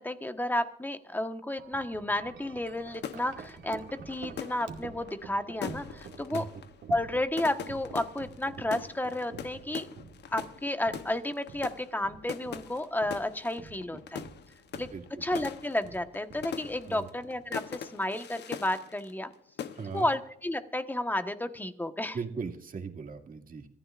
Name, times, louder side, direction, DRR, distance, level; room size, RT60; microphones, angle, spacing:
voice 1, 0.0-6.4 6.9-9.9 10.3-14.2 14.8-14.9 15.2-19.3 19.9-22.2, left 1 dB, 10° left, 7 dB, 1.3 m, -32 dB
Wind chime, 1.6-17.8, right 6 dB, 70° right, 2.3 m, -49 dB
sound 1, 2.9-19.3 19.6-20.1, left 8 dB, 60° left, 1.0 m, -42 dB
voice 2, 6.3-6.6 13.9-14.0 14.9-15.2 16.9-17.1 19.7-20.1 22.1-23.7, right 5 dB, 45° right, 3 dB, 2.3 m, -39 dB
26.0 x 14.5 x 2.5 m, 0.71 s
cardioid pair, 90°, 20 cm